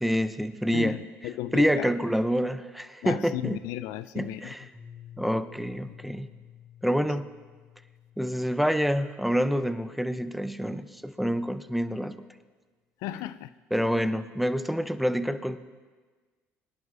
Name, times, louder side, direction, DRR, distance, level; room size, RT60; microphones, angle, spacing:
voice 1, 0.0-1.0 1.5-3.6 4.1-4.7 5.2-6.3 6.8-7.3 8.2-12.3 13.7-15.6, equal, ahead, 0.6 m, -27 dB
voice 2, 0.7-1.9 3.0-4.5 13.0-13.5, left 13 dB, 75° left, 0.4 m, -34 dB
Piano, 4.7-10.4, left 10 dB, 35° right, 2.9 m, -51 dB
23.0 x 11.0 x 2.5 m
hypercardioid pair, 70°, 6 cm